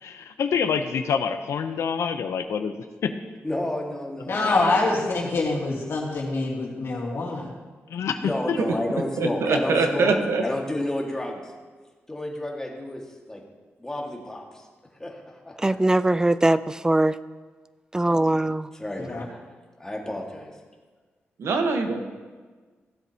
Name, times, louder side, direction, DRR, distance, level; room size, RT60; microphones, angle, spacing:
voice 1, 0.0-2.7 3.0-3.1 7.9-8.6, left 6 dB, 85° left, 8 dB, 0.6 m, -26 dB
voice 2, 3.4-4.8 8.2-10.1 10.4-11.5 12.1-13.0 13.3-13.4 13.8-14.6 15.0-16.0 18.7-19.2 19.8-20.5, left 1 dB, 15° left, -1 dB, 1.7 m, -31 dB
voice 3, 4.3-7.5 19.0-19.2, left 3 dB, 65° left, -4 dB, 2.5 m, -25 dB
voice 4, 9.2-10.4 21.4-22.0, right 3 dB, 80° right, 5 dB, 1.1 m, -23 dB
voice 5, 15.6-17.2 17.9-18.7, right 1 dB, 15° right, 15 dB, 0.3 m, -21 dB
16.0 x 7.7 x 2.8 m, 1.4 s
cardioid pair, 95°, 5 cm